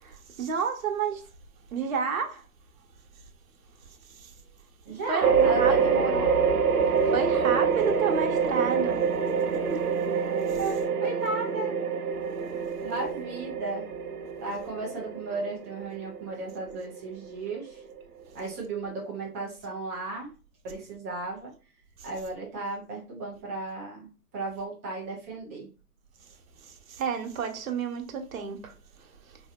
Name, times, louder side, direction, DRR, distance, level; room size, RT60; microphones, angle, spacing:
voice 1, 0.0-1.3 1.7-2.4 4.1-4.3 5.1-5.7 7.1-9.1 9.7-9.9 10.5-10.6 22.0-22.1 26.6-29.4, right 6 dB, 60° right, 1.1 m, -31 dB
voice 2, 4.9-6.4 7.3-7.4 10.6-11.7 12.8-13.8 14.4-17.8 18.3-20.3 20.6-21.5 22.0-24.1 24.3-25.7, right 2 dB, 10° right, 0.4 m, -35 dB
sound 1, 5.2-18.0, right 6 dB, 75° right, 0.9 m, -26 dB
3.9 x 2.8 x 2.4 m
hypercardioid pair, 135°, 46 cm